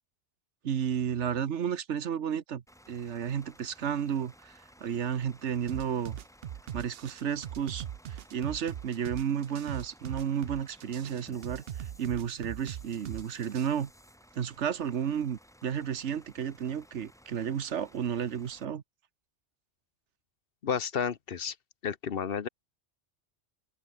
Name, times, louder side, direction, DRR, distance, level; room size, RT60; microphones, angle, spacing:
voice 1, 0.6-6.2 6.7-13.9 14.3-18.8, right 8 dB, 85° right, 1.3 m, -32 dB
Bus / Idling, 2.7-18.6, equal, 5° left, 2.5 m, -58 dB
sound 1, 5.7-13.7, right 10 dB, 65° right, 0.9 m, -40 dB
voice 2, 20.6-21.5 21.8-22.5, left 7 dB, 55° left, 1.1 m, -31 dB
open air
omnidirectional pair, 1.2 m